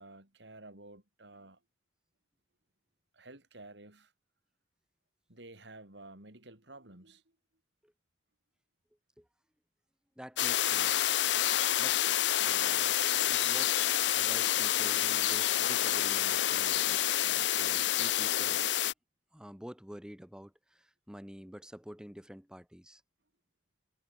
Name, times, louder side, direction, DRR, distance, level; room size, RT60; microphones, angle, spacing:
voice 1, 0.0-1.6 3.1-4.1 5.3-7.2, right 2 dB, 70° right, 4.7 m, -52 dB
voice 2, 10.2-11.2 11.8-12.0 12.4-13.0 13.3-13.8 14.1-18.6 19.3-23.0, equal, 5° right, 1.2 m, -49 dB
sound 1, 10.4-18.9, left 12 dB, 70° left, 0.7 m, -28 dB
head